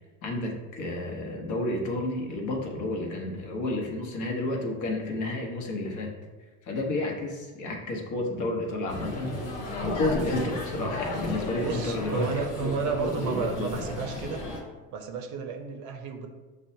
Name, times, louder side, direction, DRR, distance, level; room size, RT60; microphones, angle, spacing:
voice 1, 0.2-6.1 6.7-9.3 9.8-13.7, left 2 dB, 50° left, 1 dB, 1.0 m, -31 dB
sound 1, 8.9-14.6, left 1 dB, 85° left, 1.0 m, -34 dB
voice 2, 11.6-14.4 14.9-16.3, right 5 dB, 50° right, 4 dB, 0.6 m, -32 dB
6.0 x 2.1 x 2.7 m, 1.2 s
hypercardioid pair, 90°, 40 cm